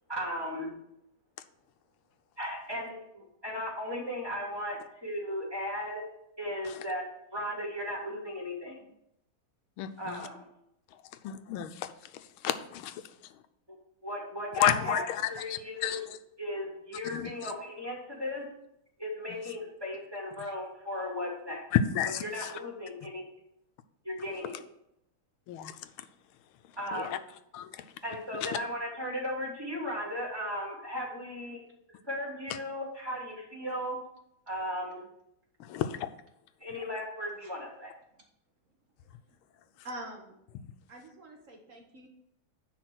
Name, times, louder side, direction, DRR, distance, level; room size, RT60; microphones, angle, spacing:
voice 1, 0.1-0.7 2.4-6.0 6.4-8.9 10.0-10.4 14.0-16.0 16.4-18.5 19.0-21.6 22.1-23.2 24.0-24.7 26.8-27.2 28.0-31.6 31.9-34.0 34.5-35.0 36.6-37.9, left 1 dB, 10° right, -3 dB, 2.1 m, -36 dB
voice 2, 9.8-10.2 11.2-13.0 14.6-16.0 17.1-17.3 21.7-22.2 25.5-25.8 26.9-27.1 27.5-27.9 28.4-28.5 35.6-35.9, left 10 dB, 85° left, 11 dB, 1.4 m, -31 dB
voice 3, 39.0-39.4 39.8-40.4 40.9-42.1, right 1 dB, 45° right, 2 dB, 1.1 m, -45 dB
10.0 x 4.0 x 6.1 m, 0.78 s
omnidirectional pair, 2.3 m